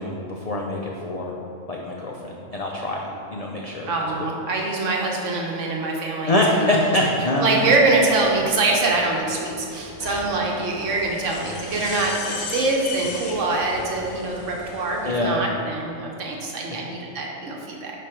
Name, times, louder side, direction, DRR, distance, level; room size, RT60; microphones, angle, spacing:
voice 1, 0.0-1.3 1.7-3.9 4.2-4.3 6.3-7.6 15.0-15.4, left 1 dB, 60° left, -2 dB, 0.3 m, -24 dB
voice 2, 3.9-6.7 7.4-17.9, right 3 dB, 70° right, -1 dB, 1.2 m, -24 dB
sound 1, 7.5-15.2, left 3 dB, 90° left, 1.3 m, -37 dB
5.1 x 5.0 x 4.4 m, 2.8 s
omnidirectional pair, 1.4 m